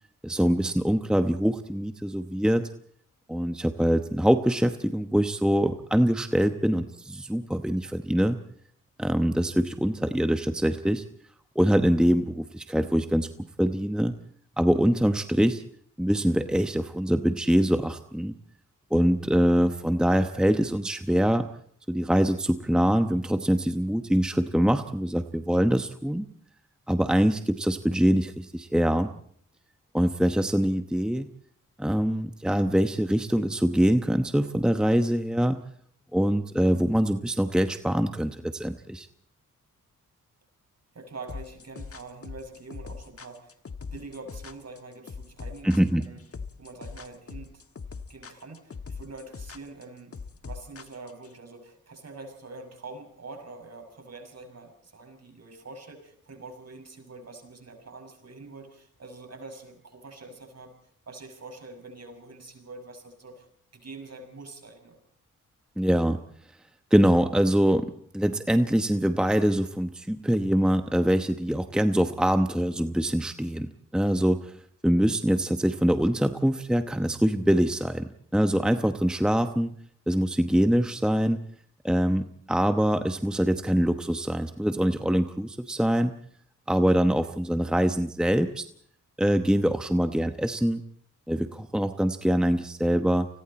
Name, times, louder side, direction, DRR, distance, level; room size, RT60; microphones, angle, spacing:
voice 1, 0.2-2.7 3.3-8.4 9.0-11.0 11.5-13.3 13.6-14.1 14.6-15.6 16.0-18.4 18.9-21.5 21.9-26.3 26.9-29.1 29.9-31.3 31.8-35.6 36.1-39.1 45.6-46.0 65.8-66.2 66.9-74.5 74.8-79.7 80.1-81.4 81.8-86.1 86.7-88.6 89.2-90.8 91.3-93.3, equal, ahead, 8 dB, 1.0 m, -24 dB
voice 2, 40.9-43.6 43.9-46.2 46.6-47.6 48.1-60.7 61.1-63.5 63.7-65.0, right 3 dB, 50° right, 5 dB, 6.3 m, -45 dB
sound 1, 41.3-51.3, left 5 dB, 45° left, 1.5 m, -40 dB
30.0 x 20.5 x 4.3 m, 0.63 s
cardioid pair, 85°, 33 cm